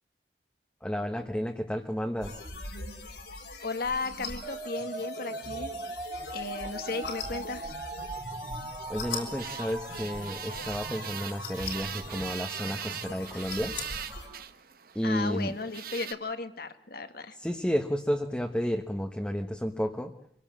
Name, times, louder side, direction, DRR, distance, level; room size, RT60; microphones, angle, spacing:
voice 1, 0.8-2.4 8.9-13.8 14.9-15.6 17.4-20.1, equal, 5° left, 3 dB, 1.2 m, -31 dB
sound 1, 2.2-14.3, left 3 dB, 80° left, 5.1 m, -41 dB
voice 2, 3.6-5.7 6.3-7.8 15.0-17.4, left 3 dB, 60° left, 9 dB, 1.8 m, -35 dB
sound 2, 4.4-14.4, right 3 dB, 25° right, 0.9 m, -41 dB
sound 3, 9.4-16.1, right 9 dB, 55° right, 1.1 m, -41 dB
25.5 x 18.0 x 7.5 m, 0.67 s
head